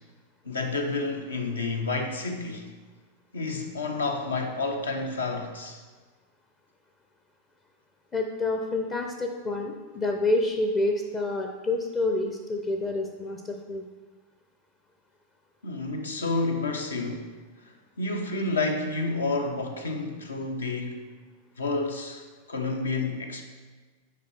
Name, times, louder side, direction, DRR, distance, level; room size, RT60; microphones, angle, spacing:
voice 1, 0.4-2.7 3.3-5.8 15.6-17.3 17.6-21.0 21.6-22.2 22.5-23.4, left 3 dB, 70° left, 5 dB, 0.8 m, -30 dB
voice 2, 8.1-13.9, left 2 dB, 25° left, 3 dB, 0.6 m, -28 dB
9.3 x 4.6 x 3.4 m, 1.3 s
figure-of-eight pair, 90°, 0 cm